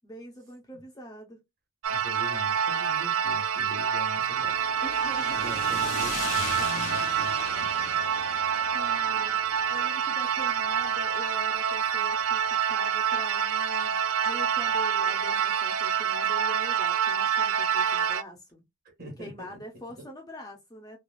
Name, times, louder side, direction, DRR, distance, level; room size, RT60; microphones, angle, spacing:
voice 1, 0.0-1.4 4.8-5.4 8.7-18.6 19.2-21.0, equal, 15° left, 0.5 m, -44 dB
sound 1, 1.8-18.2, right 8 dB, 70° right, 0.4 m, -27 dB
voice 2, 1.9-4.6 5.3-7.8 19.0-19.6 20.0-20.1, right 1 dB, 40° right, 1.4 m, -43 dB
sound 2, 4.3-12.6, left 4 dB, 80° left, 0.9 m, -39 dB
3.1 x 2.3 x 2.3 m
head